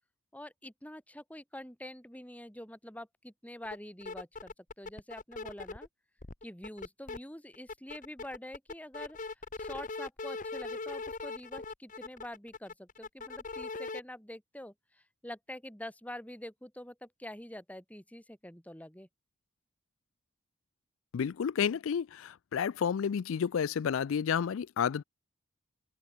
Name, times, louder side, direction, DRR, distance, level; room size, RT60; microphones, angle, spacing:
voice 1, 0.3-5.9 6.4-9.2 9.6-19.1, left 1 dB, 5° left, 3.7 m, -46 dB
sound 1, 3.6-3.8 4.0-5.9 6.2-7.2 7.5-14.0, left 3 dB, 40° left, 1.3 m, -40 dB
voice 2, 21.1-25.0, left 7 dB, 70° left, 0.4 m, -31 dB
open air
head